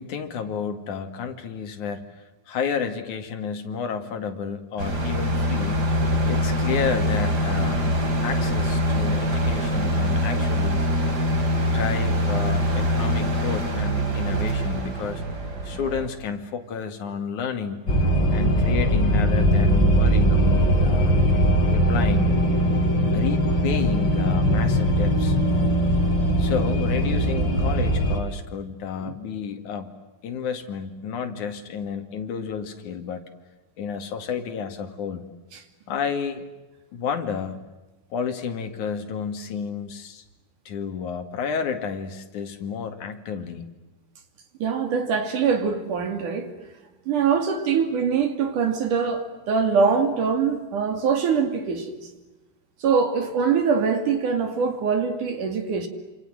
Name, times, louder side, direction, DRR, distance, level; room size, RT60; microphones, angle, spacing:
voice 1, 0.0-2.0 2.5-5.8 6.3-7.9 8.2-10.8 11.6-15.2 15.6-17.8 18.3-21.2 21.7-22.3 23.1-25.4 26.4-29.9 30.2-33.2 33.8-35.3 35.9-36.5 36.9-37.6 38.1-40.2 40.6-43.7, left 6 dB, 60° left, 3.4 m, -31 dB
sound 1, 4.8-16.1, equal, 30° right, 3.3 m, -24 dB
sound 2, 17.9-28.2, equal, 35° left, 4.7 m, -20 dB
voice 2, 44.6-46.5 47.1-52.1 52.8-55.9, right 6 dB, 60° right, 4.0 m, -23 dB
28.0 x 27.5 x 7.8 m
omnidirectional pair, 4.1 m